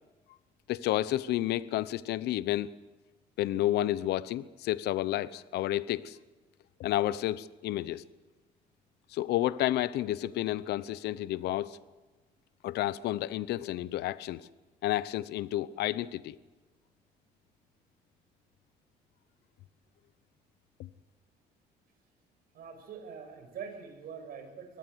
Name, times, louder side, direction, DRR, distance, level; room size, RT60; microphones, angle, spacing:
voice 1, 0.7-2.7 3.4-6.2 6.8-8.0 9.1-11.8 12.6-14.5 14.8-16.4 20.8-20.9, left 14 dB, 75° left, 17 dB, 0.9 m, -31 dB
voice 2, 22.5-24.8, right 6 dB, 60° right, 6 dB, 6.5 m, -44 dB
24.0 x 18.5 x 8.1 m, 1.2 s
cardioid pair, 110°, 17 cm